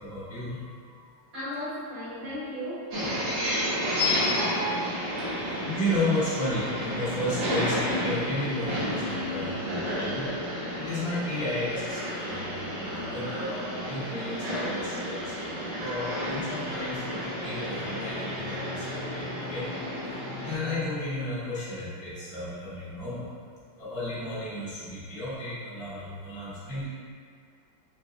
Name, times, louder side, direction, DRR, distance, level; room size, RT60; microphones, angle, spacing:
voice 1, 0.0-1.2 5.2-5.4 5.7-10.5 10.8-19.7 20.1-23.3 23.8-26.9, left 1 dB, 40° left, -10 dB, 0.9 m, -33 dB
voice 2, 1.3-5.4 15.2-15.3, equal, 40° right, -11 dB, 1.1 m, -39 dB
sound 1, 2.9-20.5, equal, 85° right, 1.9 m, -31 dB
sound 2, 16.9-21.9, left 5 dB, 85° left, 1.3 m, -44 dB
4.0 x 3.9 x 2.4 m, 2.2 s
omnidirectional pair, 2.1 m